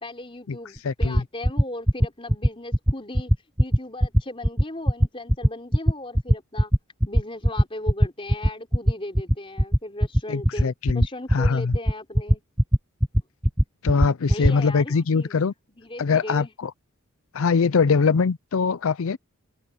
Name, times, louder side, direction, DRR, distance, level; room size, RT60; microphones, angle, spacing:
voice 1, 0.0-3.3 3.6-6.7 7.1-12.4 14.3-15.4 15.7-16.5, left 1 dB, 25° left, 4.0 m, -37 dB
voice 2, 0.8-1.2 10.3-11.1 11.3-11.8 13.8-15.5 16.0-16.7 17.3-19.2, left 5 dB, 65° left, 0.5 m, -22 dB
sound 1, 0.8-14.5, equal, 5° right, 0.3 m, -18 dB
head